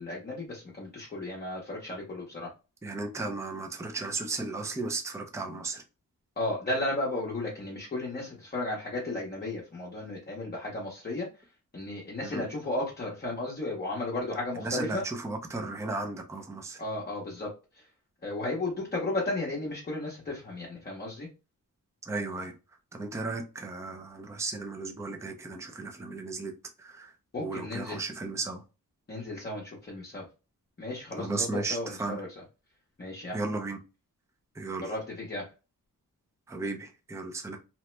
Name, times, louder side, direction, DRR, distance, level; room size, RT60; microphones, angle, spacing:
voice 1, 0.0-2.5 6.4-11.3 11.7-15.0 16.8-17.8 18.2-21.3 27.3-28.0 29.1-30.3 30.8-32.3 33.0-33.4 34.8-35.5, left 2 dB, 30° left, 0.8 m, -34 dB
voice 2, 2.8-5.8 12.2-12.5 14.6-16.8 22.0-22.5 22.9-26.5 26.8-27.1 27.4-28.6 31.2-32.2 33.3-33.8 34.5-34.9 36.5-37.6, right 3 dB, 10° right, 0.4 m, -35 dB
2.9 x 2.1 x 3.1 m
wide cardioid pair, 130°, 33 cm